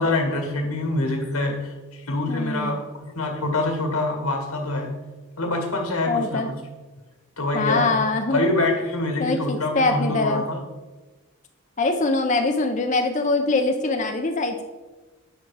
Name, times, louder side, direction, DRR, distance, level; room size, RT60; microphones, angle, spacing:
voice 1, 0.0-4.9 5.4-6.6 7.4-8.0 8.3-10.6, left 2 dB, 80° left, 2 dB, 2.0 m, -25 dB
voice 2, 2.3-2.8 6.1-6.5 7.5-8.5 9.2-10.4 11.8-14.6, left 3 dB, 35° left, 5 dB, 0.5 m, -23 dB
9.2 x 6.1 x 4.9 m, 1.2 s
head